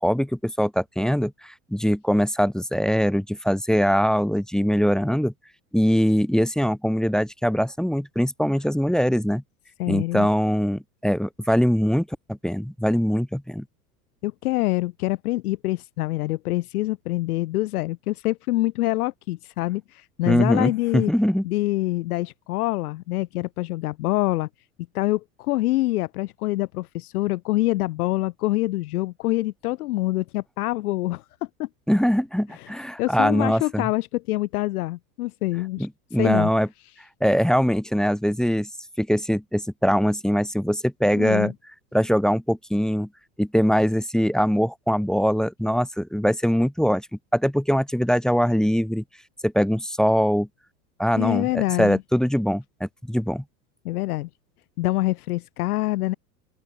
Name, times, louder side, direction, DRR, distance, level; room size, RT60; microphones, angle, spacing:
voice 1, 0.0-5.3 5.7-9.4 9.9-13.6 20.2-21.4 31.9-33.9 35.8-36.7 37.2-38.7 39.0-41.5 41.9-43.1 43.4-47.1 47.3-49.0 49.4-50.5 51.0-53.4, equal, ahead, 1.4 m, -22 dB
voice 2, 9.8-10.3 14.2-21.1 21.4-24.5 24.9-31.2 31.6-31.7 32.5-32.7 33.0-35.9 36.2-36.5 41.1-41.5 51.1-52.0 53.8-54.3 54.8-56.1, left 18 dB, 70° left, 1.0 m, -25 dB
open air
hypercardioid pair, 95°, 46 cm